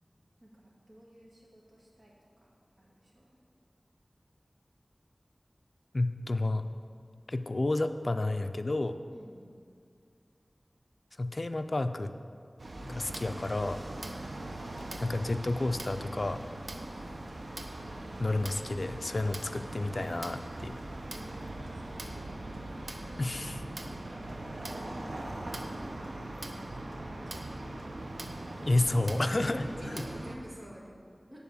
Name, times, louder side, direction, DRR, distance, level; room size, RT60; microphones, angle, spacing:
voice 1, 0.4-2.5 2.8-3.4 9.1-9.5 13.1-13.2 13.9-14.6 16.6-17.1 21.1-22.6 23.3-24.1 25.7-27.5 27.8-28.2 28.5-31.4, equal, 45° right, -4 dB, 1.9 m, -52 dB
voice 2, 5.9-6.6 7.3-8.9 11.2-12.1 12.8-13.8 15.0-16.4 18.2-20.8 23.2-23.6 28.7-30.0, left 2 dB, 60° left, 9 dB, 0.3 m, -30 dB
sound 1, 12.6-30.3, right 1 dB, 75° right, 0.7 m, -40 dB
9.2 x 4.2 x 7.0 m, 2.2 s
wide cardioid pair, 60°, 0 cm